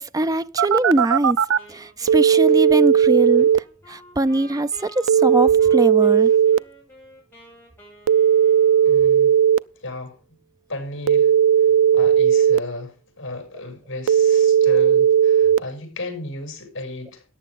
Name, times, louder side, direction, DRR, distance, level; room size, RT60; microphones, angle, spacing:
voice 1, 0.0-1.4 1.7-3.5 3.9-6.3, right 1 dB, 15° right, 0.5 m, -22 dB
Telephone, 0.6-1.6 2.1-3.6 5.1-6.6 8.1-9.6 11.1-12.6 14.1-15.6, right 8 dB, 70° right, 0.5 m, -16 dB
Wind instrument woodwind instrument, 1.6-9.5, right 1 dB, 10° left, 7.1 m, -49 dB
voice 2, 8.8-9.3 9.8-10.4 10.7-11.3 11.9-17.2, left 2 dB, 60° left, 6.4 m, -34 dB
14.5 x 10.0 x 3.7 m
head